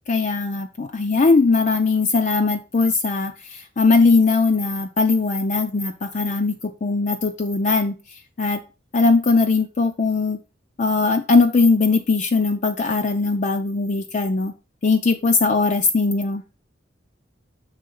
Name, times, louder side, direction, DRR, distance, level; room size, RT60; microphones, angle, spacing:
voice 1, 0.1-7.9 8.4-8.6 8.9-10.4 10.8-14.5 14.8-16.4, left 3 dB, 40° left, 4 dB, 0.4 m, -20 dB
6.4 x 3.3 x 5.4 m, 0.31 s
head